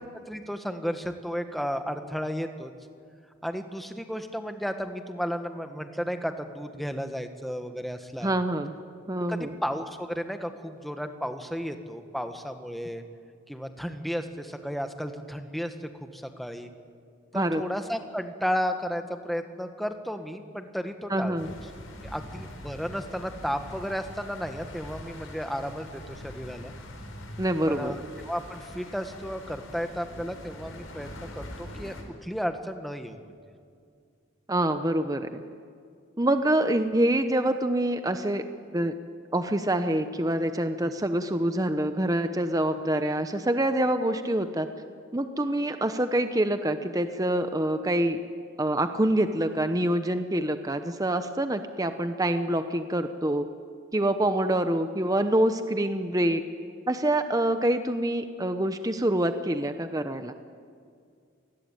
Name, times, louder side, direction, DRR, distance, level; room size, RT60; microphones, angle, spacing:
voice 1, 0.0-2.7 3.4-8.3 9.3-13.0 13.5-15.7 16.0-16.7 17.3-21.4 22.0-26.7 27.7-31.9 32.2-33.3 40.8-40.9, equal, ahead, 7 dB, 1.5 m, -33 dB
voice 2, 8.2-8.7 9.1-9.5 17.3-17.6 21.1-21.5 27.4-27.9 34.5-35.4 36.2-38.4 38.7-38.9 39.3-44.7 45.1-48.2 48.6-53.5 53.9-56.4 56.9-60.3, right 1 dB, 20° right, 8 dB, 0.9 m, -26 dB
sound 1, 21.4-32.0, left 1 dB, 85° left, 5.2 m, -43 dB
28.0 x 20.0 x 9.1 m, 2.2 s
head